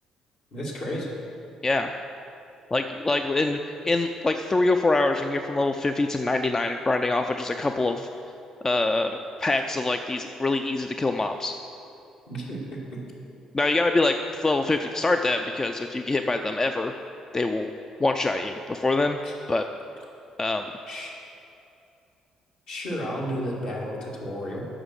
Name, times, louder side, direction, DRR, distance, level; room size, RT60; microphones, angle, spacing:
voice 1, 0.5-1.1 12.3-12.8 19.2-19.3 20.9-21.1 22.7-24.7, equal, 60° left, -4 dB, 2.3 m, -32 dB
voice 2, 2.7-8.1 8.6-11.5 13.5-16.9 17.3-17.7 18.0-19.2 19.5-19.6 20.4-20.7, left 2 dB, 25° left, 6 dB, 0.4 m, -25 dB
8.7 x 6.2 x 6.5 m, 2.8 s
hypercardioid pair, 45°, 2 cm